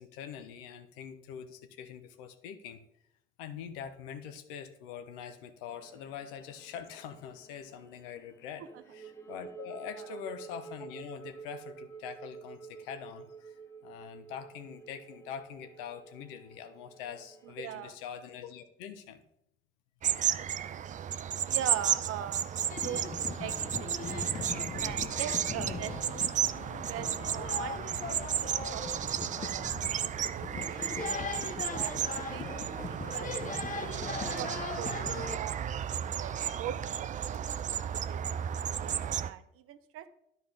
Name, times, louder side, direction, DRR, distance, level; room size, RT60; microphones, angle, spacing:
voice 1, 0.0-2.9 3.4-8.6 8.9-19.2 38.3-38.7, left 8 dB, 70° left, 10 dB, 0.8 m, -44 dB
sound 1, 5.7-17.6, right 6 dB, 10° left, 1.7 m, -50 dB
voice 2, 17.6-17.9 21.4-22.5 22.8-24.3 24.8-26.5 26.8-27.8 28.1-28.4 28.7-29.2 29.4-30.0 30.3-31.0 31.7-33.4 34.1-37.4 37.9-40.1, right 10 dB, 50° right, 11 dB, 0.7 m, -42 dB
sound 2, 20.0-39.3, right 9 dB, 25° right, 0.4 m, -33 dB
sound 3, 22.7-35.4, left 4 dB, 25° left, 0.8 m, -39 dB
12.0 x 4.4 x 3.3 m, 0.76 s
figure-of-eight pair, 50°, 29 cm